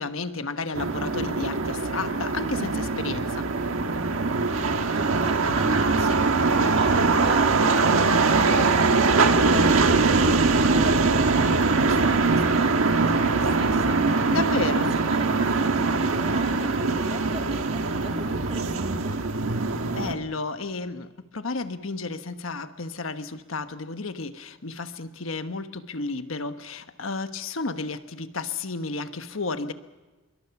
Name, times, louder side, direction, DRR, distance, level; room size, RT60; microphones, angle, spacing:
voice 1, 0.0-3.5 14.3-15.0 20.0-29.7, left 3 dB, 80° left, 9 dB, 1.2 m, -32 dB
sound 1, 0.7-20.1, right 3 dB, 90° right, 1.5 m, -22 dB
voice 2, 4.6-6.9 7.2-10.3 10.7-14.0 14.7-19.1, right 2 dB, 30° right, 5 dB, 1.9 m, -38 dB
25.0 x 23.0 x 5.9 m, 1.2 s
head